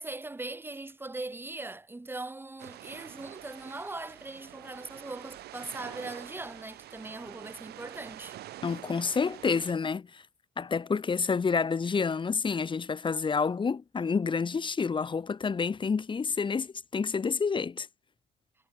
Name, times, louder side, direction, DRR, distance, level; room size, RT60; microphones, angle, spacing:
voice 1, 0.0-8.4, right 2 dB, 10° right, 4.3 m, -40 dB
sound 1, 2.6-9.7, right 14 dB, 75° right, 6.6 m, -46 dB
voice 2, 8.6-10.2 10.6-17.9, left 5 dB, 30° left, 3.3 m, -29 dB
cardioid pair, 110°, 17 cm